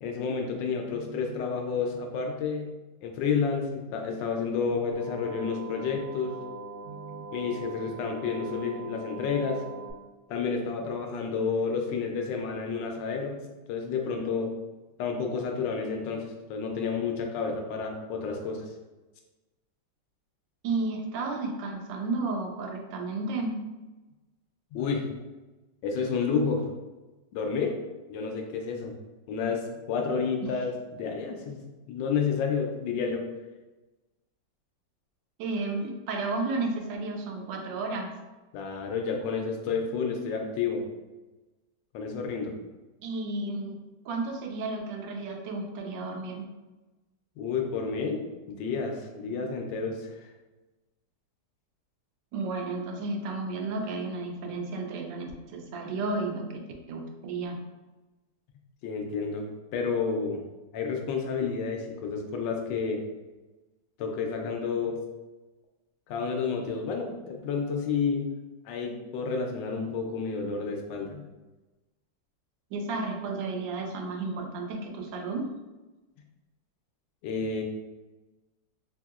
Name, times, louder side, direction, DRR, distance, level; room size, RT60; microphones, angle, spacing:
voice 1, 0.0-2.7 3.0-6.4 7.3-9.6 10.3-13.4 13.7-14.5 15.0-18.6 24.7-25.0 25.8-26.7 27.3-27.8 28.1-28.9 29.3-33.2 38.5-40.8 41.9-42.5 47.4-50.1 58.8-59.5 59.7-60.4 60.7-63.0 64.0-65.0 66.1-68.3 68.6-71.2 77.2-77.6, left 5 dB, 85° left, 2 dB, 1.3 m, -30 dB
voice 2, 0.9-1.4 6.8-7.3 20.6-23.6 30.4-30.5 35.4-38.2 43.0-43.8 44.0-46.5 52.3-56.6 56.9-57.6 72.7-75.5, right 3 dB, 90° right, 2 dB, 1.3 m, -33 dB
sound 1, 4.9-9.9, right 3 dB, 70° right, 1.4 m, -42 dB
3.5 x 2.7 x 2.3 m, 1.1 s
omnidirectional pair, 1.9 m